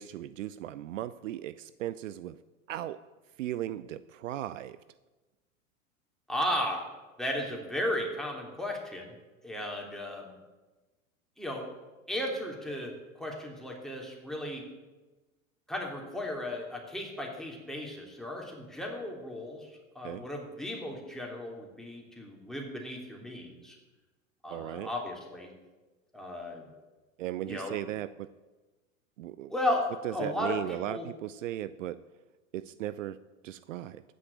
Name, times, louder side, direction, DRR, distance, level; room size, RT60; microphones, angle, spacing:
voice 1, 0.0-2.4 2.7-3.0 3.4-4.8 20.0-20.3 24.5-24.9 27.2-28.3 29.2-29.5 30.0-32.0 32.5-34.0, right 13 dB, 65° right, 17 dB, 0.6 m, -37 dB
voice 2, 6.3-6.9 7.2-9.1 9.4-10.4 11.4-11.7 12.1-14.7 15.7-23.8 24.4-25.5 26.1-26.7 27.5-27.8 29.5-31.1, left 1 dB, ahead, -1 dB, 3.2 m, -35 dB
15.0 x 6.3 x 8.3 m, 1.2 s
figure-of-eight pair, 90°, 41 cm